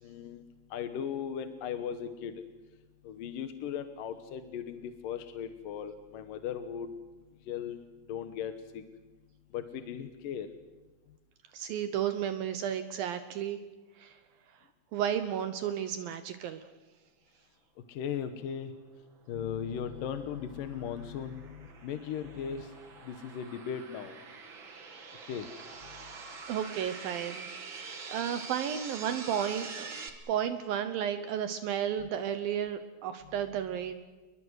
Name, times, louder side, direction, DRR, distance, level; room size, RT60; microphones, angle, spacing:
voice 1, 0.0-0.4 0.7-2.4 3.0-6.9 7.5-7.8 8.1-8.8 9.5-10.5 17.9-18.7 19.3-22.7 23.0-24.1 25.3-25.5 32.0-32.1, left 8 dB, 70° left, 8 dB, 2.6 m, -37 dB
voice 2, 11.5-13.6 14.0-14.1 14.9-16.6 26.5-27.5 27.8-34.0, right 9 dB, 75° right, 9 dB, 2.7 m, -33 dB
sound 1, 19.3-30.1, right 4 dB, 40° right, 2.3 m, -45 dB
30.0 x 22.0 x 6.4 m, 1.2 s
omnidirectional pair, 4.4 m